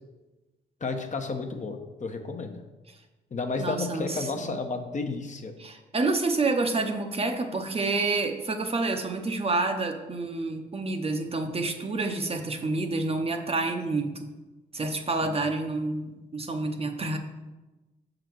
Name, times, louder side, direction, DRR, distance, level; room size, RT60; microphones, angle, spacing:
voice 1, 0.8-2.6 3.3-5.6 14.8-14.9 15.2-15.4, left 3 dB, 40° left, 5 dB, 0.9 m, -32 dB
voice 2, 3.6-4.6 5.6-14.3 14.7-17.2, right 3 dB, 30° right, 4 dB, 0.8 m, -28 dB
6.4 x 3.9 x 6.1 m, 1.1 s
cardioid pair, 75°, 19 cm